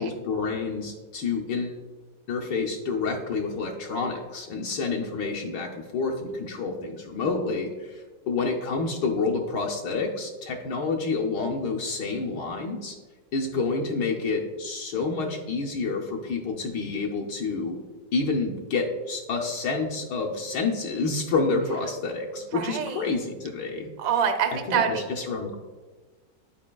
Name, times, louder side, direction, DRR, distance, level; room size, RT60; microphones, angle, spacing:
voice 1, 0.0-1.8 2.3-13.0 13.3-17.8 18.1-23.9 24.7-25.6, left 4 dB, 80° left, -1 dB, 1.3 m, -28 dB
voice 2, 22.5-23.0 24.0-25.0, right 8 dB, 65° right, 6 dB, 1.0 m, -26 dB
11.0 x 4.5 x 2.2 m, 1.3 s
omnidirectional pair, 2.0 m